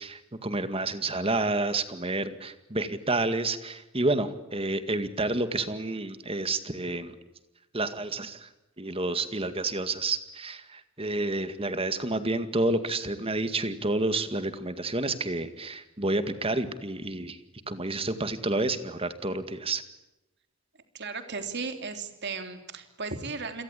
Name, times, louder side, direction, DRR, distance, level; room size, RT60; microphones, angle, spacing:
voice 1, 0.0-7.2 7.7-8.5 8.8-17.4 17.7-19.8, right 2 dB, 25° right, 10 dB, 2.1 m, -29 dB
voice 2, 20.9-23.6, right 4 dB, 50° right, 7 dB, 3.4 m, -35 dB
29.5 x 22.5 x 8.5 m, 0.98 s
head